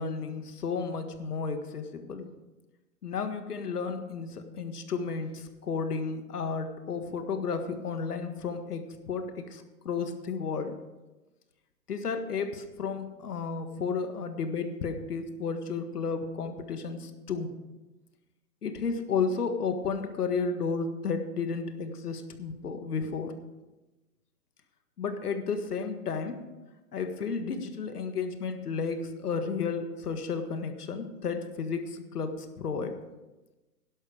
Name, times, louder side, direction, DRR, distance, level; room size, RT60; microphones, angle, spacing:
voice 1, 0.0-2.3 3.0-10.7 11.9-17.5 18.6-23.4 25.0-26.4 26.9-33.0, left 5 dB, 80° left, 8 dB, 1.7 m, -32 dB
12.0 x 11.0 x 4.9 m, 1.1 s
hypercardioid pair, 160°, 45 cm